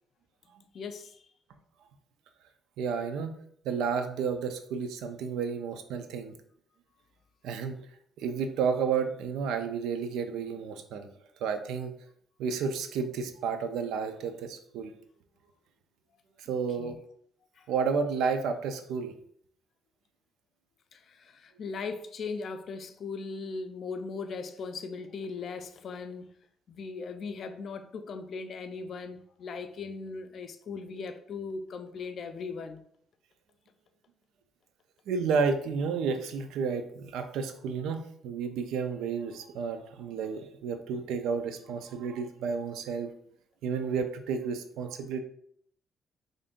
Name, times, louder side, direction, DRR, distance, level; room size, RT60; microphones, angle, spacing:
voice 1, 0.7-1.3 16.5-17.0 17.6-17.7 20.9-26.3 26.7-32.8, left 4 dB, 60° left, 0.4 m, -39 dB
voice 2, 2.8-3.3 3.6-6.3 7.4-7.8 8.2-11.1 11.4-11.9 12.4-14.9 16.4-17.0 17.7-19.1 35.1-43.1 43.6-45.2, right 5 dB, 90° right, 0.4 m, -31 dB
5.0 x 2.6 x 2.4 m
cardioid pair, 90°, 0 cm